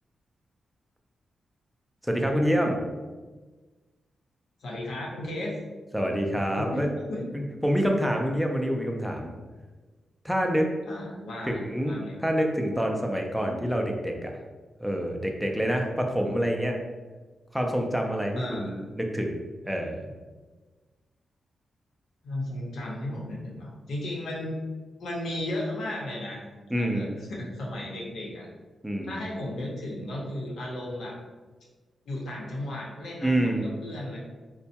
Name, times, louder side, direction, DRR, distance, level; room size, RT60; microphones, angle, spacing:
voice 1, 2.0-2.8 5.9-6.9 7.3-9.3 10.2-10.7 11.5-11.9 12.2-14.3 14.8-16.8 17.5-20.1 26.7-27.1 28.8-29.2 33.2-33.7, equal, ahead, 1 dB, 0.4 m, -27 dB
voice 2, 4.6-5.5 6.5-7.2 10.9-11.6 11.9-12.2 18.4-18.8 22.2-24.5 25.0-26.4 26.8-28.5 29.0-31.2 32.1-34.2, left 1 dB, 90° left, -4 dB, 0.9 m, -35 dB
4.2 x 2.2 x 2.8 m, 1.3 s
wide cardioid pair, 155°, 0 cm